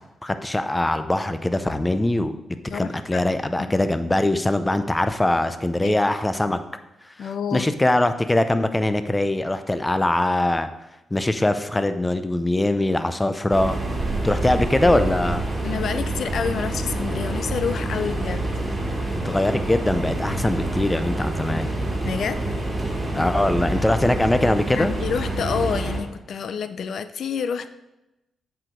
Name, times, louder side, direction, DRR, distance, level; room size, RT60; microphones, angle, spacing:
voice 1, 0.2-2.4 2.7-6.6 7.2-10.7 11.1-13.8 14.2-15.4 19.1-21.7 23.1-24.9, left 1 dB, 10° left, 10 dB, 0.5 m, -22 dB
voice 2, 2.7-3.3 3.6-3.7 5.8-6.0 7.2-7.7 15.6-18.5 22.0-22.4 24.7-27.7, left 6 dB, 65° left, 12 dB, 0.5 m, -28 dB
sound 1, 13.5-26.0, right 2 dB, 25° right, 2.2 m, -27 dB
7.8 x 4.7 x 5.1 m, 0.96 s
cardioid pair, 115°, 0 cm